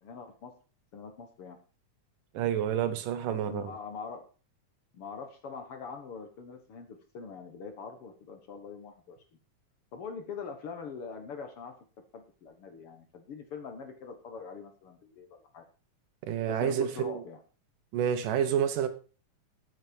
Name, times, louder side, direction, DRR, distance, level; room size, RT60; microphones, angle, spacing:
voice 1, 0.0-0.5 0.9-1.6 3.3-4.3 4.9-9.2 9.9-11.7 12.1-15.6 16.5-17.4, left 5 dB, 55° left, 1.9 m, -43 dB
voice 2, 2.3-3.7 16.2-17.2 17.9-18.9, right 9 dB, 90° right, 2.8 m, -29 dB
12.5 x 8.8 x 4.5 m
omnidirectional pair, 3.7 m